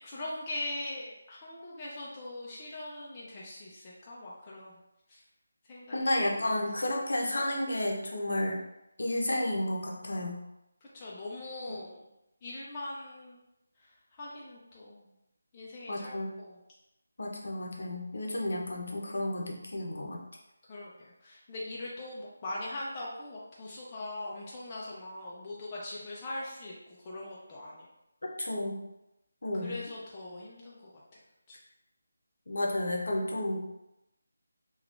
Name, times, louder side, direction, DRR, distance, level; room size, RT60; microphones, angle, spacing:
voice 1, 0.0-4.8 5.1-5.2 5.6-6.1 10.9-12.1 12.4-13.4 13.8-15.0 15.5-16.6 20.7-27.9 29.5-31.0 31.5-31.6, left 2 dB, 15° left, -6 dB, 0.4 m, -41 dB
voice 2, 5.9-8.6 9.0-10.4 15.9-16.3 17.2-20.2 28.4-28.8 29.4-29.7 32.5-33.7, left 1 dB, 65° left, 0 dB, 0.7 m, -31 dB
3.4 x 2.3 x 2.4 m, 0.89 s
figure-of-eight pair, 175°, 0 cm